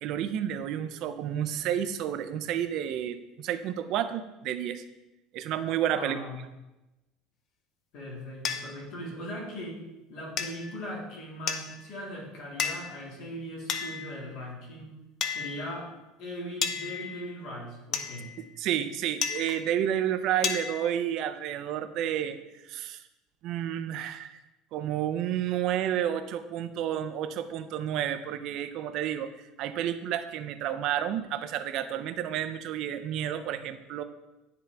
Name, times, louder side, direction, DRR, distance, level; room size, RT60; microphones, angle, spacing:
voice 1, 0.0-4.8 5.3-6.2 18.4-22.4 22.7-23.0 23.4-24.4 24.7-29.3 29.6-34.0, right 10 dB, 50° right, 10 dB, 0.4 m, -30 dB
voice 2, 5.9-6.4 7.9-15.0 15.3-15.9 16.2-18.3, equal, 55° left, -2 dB, 2.0 m, -39 dB
sound 1, 8.4-8.6 10.4-10.7 11.5-11.9 12.6-13.0 13.7-14.3 15.2-15.8 16.6-17.4 17.9-18.5 19.2-19.8 20.4-21.0, left 6 dB, 35° left, 0.5 m, -33 dB
9.8 x 3.8 x 3.4 m, 1.0 s
cardioid pair, 160°, 0 cm